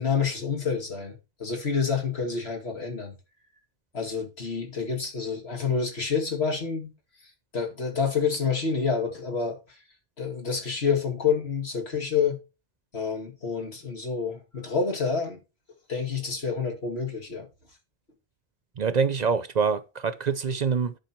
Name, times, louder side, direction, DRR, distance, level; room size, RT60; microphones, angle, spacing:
voice 1, 0.0-3.1 3.9-6.9 7.5-9.8 10.2-12.4 12.9-15.4 15.9-17.5, left 5 dB, 90° left, 2.7 m, -28 dB
voice 2, 18.8-20.9, right 5 dB, 50° right, 0.6 m, -25 dB
10.5 x 5.3 x 4.4 m
omnidirectional pair, 1.0 m